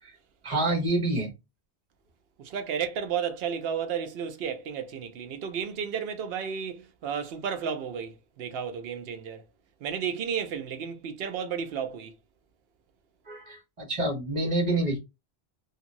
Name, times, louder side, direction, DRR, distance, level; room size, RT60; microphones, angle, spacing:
voice 1, 0.4-1.3 13.3-15.0, right 2 dB, 40° right, 1.3 m, -27 dB
voice 2, 2.4-9.4 9.8-12.1, right 7 dB, 70° right, 0.8 m, -33 dB
2.8 x 2.5 x 2.5 m
omnidirectional pair, 1.1 m